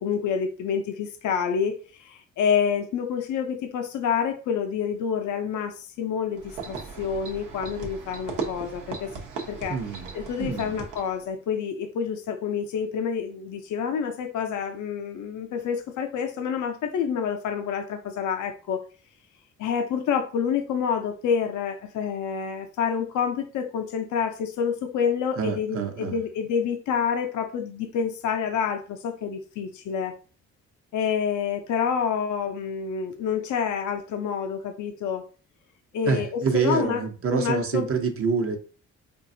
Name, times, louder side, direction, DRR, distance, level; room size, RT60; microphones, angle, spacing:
voice 1, 0.0-9.1 9.5-9.8 10.1-18.8 19.6-30.1 30.9-35.2 35.9-37.0 37.3-37.9, left 7 dB, 75° left, 0.6 m, -28 dB
sound 1, 6.4-11.2, right 5 dB, 90° right, 0.9 m, -37 dB
voice 2, 9.7-10.1 10.4-10.7 25.4-26.1 36.0-38.6, right 5 dB, 45° right, 0.8 m, -26 dB
4.5 x 2.5 x 2.7 m
cardioid pair, 90°, 30 cm